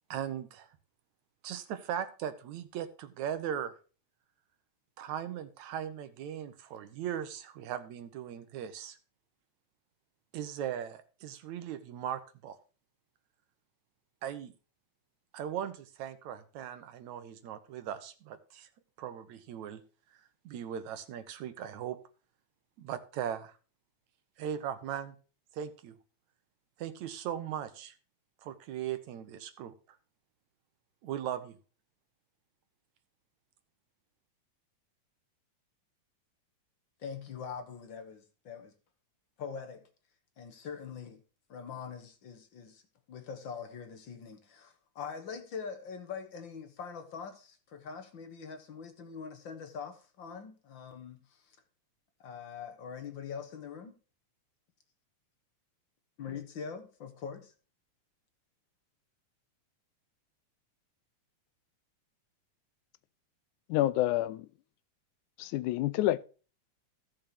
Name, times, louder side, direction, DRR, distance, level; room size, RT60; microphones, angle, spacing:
voice 1, 0.1-0.7 1.4-3.7 5.0-9.0 10.3-12.6 14.2-14.5 15.3-18.7 19.0-19.8 20.4-22.0 22.8-23.5 24.4-25.2 25.5-26.0 26.8-27.9 28.4-30.0 31.0-31.6, right 9 dB, 75° right, 2.3 m, -38 dB
voice 2, 37.0-38.7 39.4-39.9 40.4-41.2 41.5-42.8 43.1-51.6 52.2-54.0 56.2-57.5, left 6 dB, 50° left, 1.6 m, -43 dB
voice 3, 63.7-64.5 65.4-66.2, left 14 dB, 85° left, 2.1 m, -28 dB
16.0 x 7.0 x 2.9 m
omnidirectional pair, 3.4 m